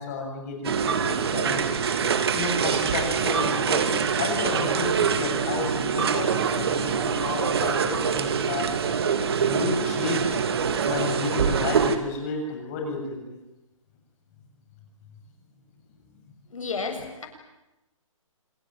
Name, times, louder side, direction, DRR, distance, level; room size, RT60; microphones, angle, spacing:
voice 1, 0.0-1.7 2.3-8.7 9.4-10.4 10.8-13.4, left 3 dB, 25° left, 2 dB, 7.4 m, -31 dB
sound 1, 0.6-12.0, right 6 dB, 45° right, 2.5 m, -25 dB
voice 2, 16.5-17.3, left 4 dB, 70° left, 5 dB, 7.7 m, -32 dB
27.0 x 23.0 x 9.2 m, 0.97 s
hypercardioid pair, 165°, 18 cm